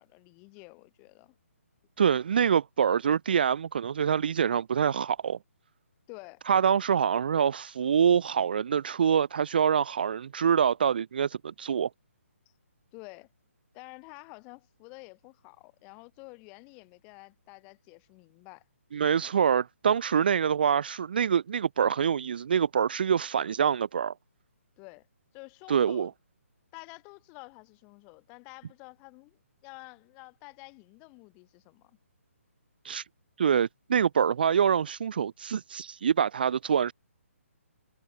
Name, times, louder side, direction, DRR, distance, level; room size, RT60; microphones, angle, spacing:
voice 1, 0.0-1.3 6.1-6.4 12.9-13.3 13.7-18.6 24.8-25.1 25.3-26.1 26.7-32.0, left 32 dB, 15° left, 3.3 m, -49 dB
voice 2, 2.0-5.4 6.5-11.9 18.9-24.1 25.7-26.1 32.8-33.0 33.4-36.9, right 7 dB, 40° right, 0.6 m, -25 dB
hypercardioid pair, 170°, 8 cm